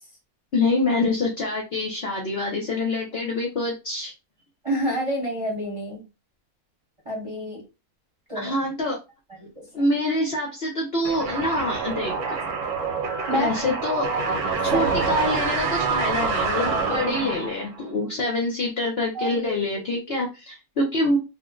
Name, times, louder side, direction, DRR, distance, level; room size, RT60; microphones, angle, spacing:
voice 1, 0.5-4.1 8.3-9.0 9.7-12.4 13.3-14.1 14.6-21.2, left 2 dB, 55° left, -1 dB, 0.7 m, -26 dB
voice 2, 4.6-6.0 7.1-7.6 8.3-8.5 9.4-9.6 13.3-13.7 14.2-14.3 14.7-14.9 16.6-17.3 19.1-19.6 20.1-20.2, equal, 25° right, -3 dB, 0.8 m, -29 dB
sound 1, 11.0-17.8, right 4 dB, 75° right, 1.1 m, -26 dB
2.5 x 2.0 x 3.6 m, 0.28 s
omnidirectional pair, 1.6 m